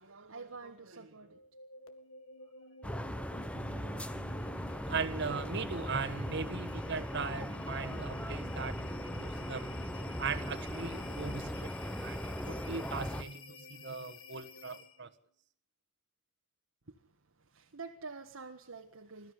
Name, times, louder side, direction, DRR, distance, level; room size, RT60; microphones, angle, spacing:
voice 1, 0.0-1.5 2.4-3.2 3.5-3.7 16.9-19.3, right 4 dB, 85° right, 1.6 m, -49 dB
sound 1, 1.2-15.1, left 3 dB, 80° left, 2.1 m, -52 dB
sound 2, 2.8-13.2, equal, 5° left, 1.0 m, -39 dB
voice 2, 4.8-8.8 9.0-9.8 10.2-15.1, right 5 dB, 55° right, 1.5 m, -39 dB
22.5 x 13.5 x 9.5 m
head